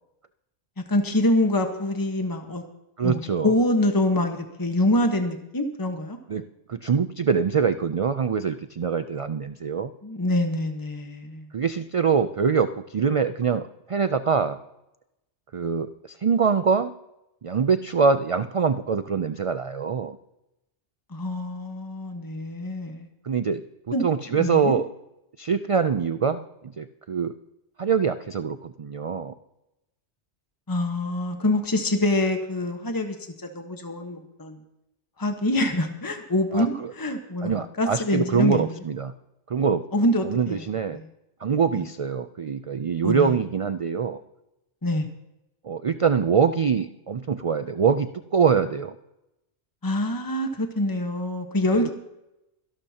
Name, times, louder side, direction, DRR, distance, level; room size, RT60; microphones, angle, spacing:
voice 1, 0.9-2.6 3.0-6.2 10.0-11.5 21.1-23.1 23.9-24.0 24.4-24.7 30.7-33.2 33.5-34.6 35.2-38.8 39.9-40.6 40.9-41.1 43.0-43.3 44.8-45.1 49.8-51.9, left 1 dB, 20° left, 5 dB, 1.3 m, -25 dB
voice 2, 3.0-3.5 6.3-9.9 11.5-14.6 15.5-16.9 17.4-20.2 23.2-23.6 24.0-24.9 25.4-26.4 26.8-27.3 27.8-29.3 36.5-36.9 37.4-39.1 39.5-39.8 40.2-41.0 41.4-44.2 45.6-49.0 51.7-51.9, right 6 dB, 60° right, 11 dB, 0.3 m, -24 dB
24.5 x 12.0 x 2.9 m, 0.89 s
omnidirectional pair, 1.2 m